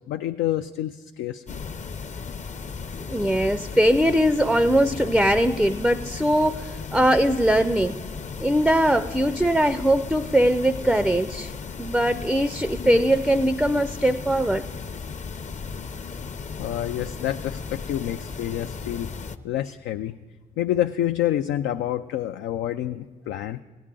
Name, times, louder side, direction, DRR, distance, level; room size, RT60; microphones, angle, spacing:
voice 1, 0.1-1.6 16.6-19.1 19.4-20.1 20.6-23.6, left 12 dB, 75° left, 8 dB, 0.4 m, -28 dB
sound 1, 1.5-19.4, left 5 dB, 40° left, 0.6 m, -35 dB
voice 2, 3.1-8.0 8.4-11.5 11.8-14.7, right 1 dB, ahead, 12 dB, 0.4 m, -21 dB
17.0 x 9.9 x 3.8 m, 1.3 s
supercardioid pair, 50°, 19 cm